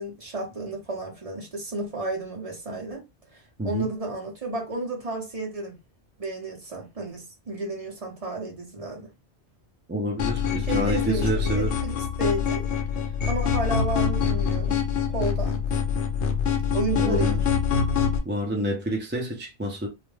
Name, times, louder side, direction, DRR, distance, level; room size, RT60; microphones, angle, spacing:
voice 1, 0.0-3.0 3.6-5.8 6.2-9.1 10.6-12.7 13.3-14.8 15.1-15.6 16.7-17.6, right 2 dB, 35° right, 0.7 m, -32 dB
voice 2, 9.9-11.7 17.0-17.4 18.3-19.9, equal, 20° right, 0.3 m, -28 dB
sound 1, 10.2-18.2, left 7 dB, 70° left, 0.9 m, -25 dB
2.4 x 2.1 x 3.1 m
omnidirectional pair, 1.2 m